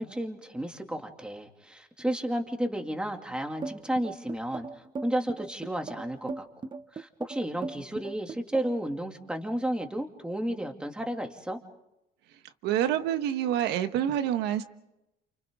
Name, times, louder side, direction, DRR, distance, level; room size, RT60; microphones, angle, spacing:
voice 1, 0.0-6.5 6.9-11.6, right 1 dB, 5° right, 3 dB, 2.5 m, -32 dB
sound 1, 3.6-8.9, right 4 dB, 25° right, 1.0 m, -38 dB
voice 2, 12.6-14.6, right 11 dB, 90° right, 9 dB, 1.4 m, -27 dB
29.5 x 29.0 x 3.7 m, 0.88 s
cardioid pair, 110°, 17 cm